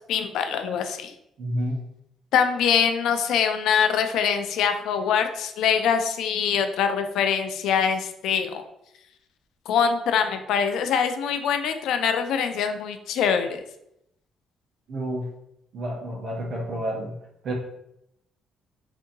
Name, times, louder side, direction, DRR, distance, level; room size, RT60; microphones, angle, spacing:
voice 1, 0.1-1.1 2.3-8.6 9.7-13.6, left 7 dB, 80° left, 7 dB, 0.3 m, -24 dB
voice 2, 1.4-1.8 14.9-15.3 15.7-17.1 17.4-17.5, right 1 dB, 60° right, -1 dB, 0.7 m, -29 dB
2.8 x 2.5 x 2.6 m, 0.78 s
cardioid pair, 85°, 0 cm